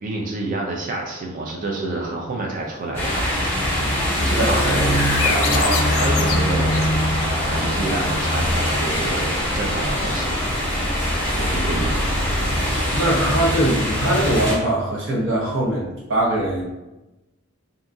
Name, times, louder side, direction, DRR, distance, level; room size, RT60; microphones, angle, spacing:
voice 1, 0.0-3.7 4.2-6.7 7.5-10.5 11.4-12.0, right 2 dB, 40° right, -1 dB, 0.4 m, -28 dB
sound 1, 2.9-14.5, equal, 15° left, 1.3 m, -22 dB
voice 2, 4.3-4.7 12.9-16.6, right 1 dB, 65° right, -3 dB, 0.8 m, -21 dB
sound 2, 4.7-7.4, left 7 dB, 90° left, 0.3 m, -28 dB
2.8 x 2.6 x 2.3 m, 1.0 s
head